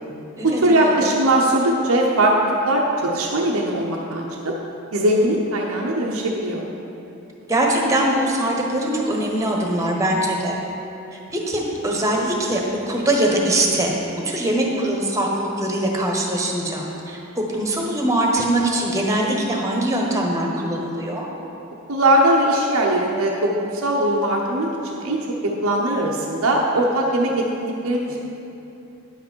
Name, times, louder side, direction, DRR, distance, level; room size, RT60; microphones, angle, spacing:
voice 1, 0.4-4.5 4.9-6.6 21.9-28.2, right 1 dB, 80° right, -2 dB, 0.8 m, -20 dB
voice 2, 7.5-10.6 11.1-12.6 12.9-14.0 14.2-21.3, right 1 dB, 15° right, -1 dB, 1.2 m, -22 dB
10.0 x 7.7 x 4.5 m, 2.9 s
head